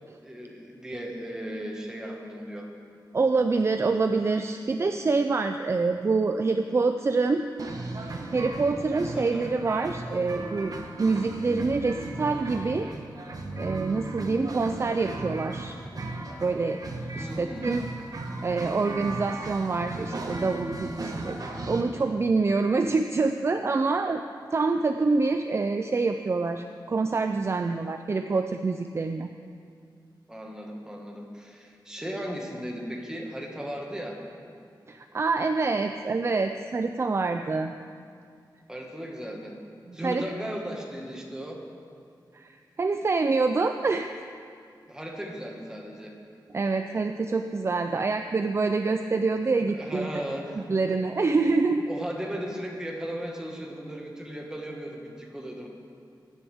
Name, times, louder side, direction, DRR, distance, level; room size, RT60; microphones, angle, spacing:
voice 1, 0.2-2.7 9.1-9.5 17.1-17.9 30.3-34.2 38.7-39.6 39.9-41.7 44.9-46.2 49.7-50.7 51.9-55.7, equal, 10° right, -1 dB, 1.7 m, -36 dB
voice 2, 3.1-7.4 8.3-10.7 11.0-12.9 13.6-15.8 16.4-16.8 17.2-17.8 18.4-21.4 21.7-24.2 24.5-29.3 34.9-37.7 39.9-40.2 42.3-44.1 46.5-50.2 50.6-51.9, right 3 dB, 35° right, 7 dB, 0.4 m, -26 dB
sound 1, 7.6-21.8, right 2 dB, 50° right, 1.2 m, -36 dB
21.5 x 9.9 x 3.6 m, 2.3 s
wide cardioid pair, 145°, 8 cm